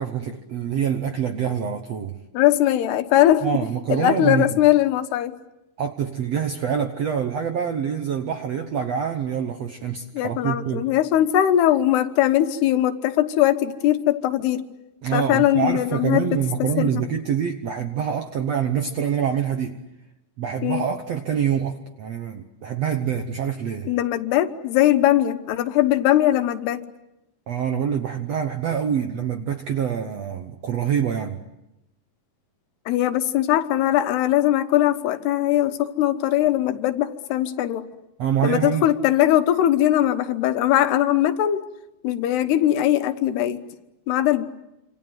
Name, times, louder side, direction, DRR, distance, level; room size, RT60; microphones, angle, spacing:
voice 1, 0.0-2.2 3.4-4.5 5.8-10.9 15.0-19.8 20.4-23.9 27.5-31.4 38.2-38.9, right 8 dB, 70° right, 6 dB, 1.6 m, -25 dB
voice 2, 2.3-3.5 3.9-5.4 10.1-14.7 15.1-17.0 20.6-20.8 23.8-26.8 32.9-37.9 38.4-41.7 42.0-43.6 44.1-44.4, left 12 dB, 90° left, 9 dB, 3.3 m, -20 dB
27.0 x 27.0 x 8.0 m, 0.90 s
omnidirectional pair, 4.6 m